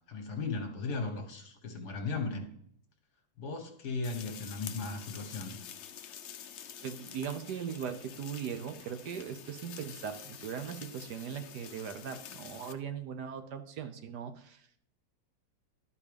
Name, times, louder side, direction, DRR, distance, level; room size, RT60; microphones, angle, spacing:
voice 1, 0.1-2.5 3.4-5.6, left 3 dB, 60° left, 4 dB, 1.8 m, -36 dB
sound 1, 4.0-12.7, left 9 dB, 80° left, 0.6 m, -48 dB
voice 2, 6.8-14.8, right 8 dB, 70° right, 9 dB, 1.3 m, -39 dB
12.0 x 4.9 x 5.1 m, 0.66 s
omnidirectional pair, 2.0 m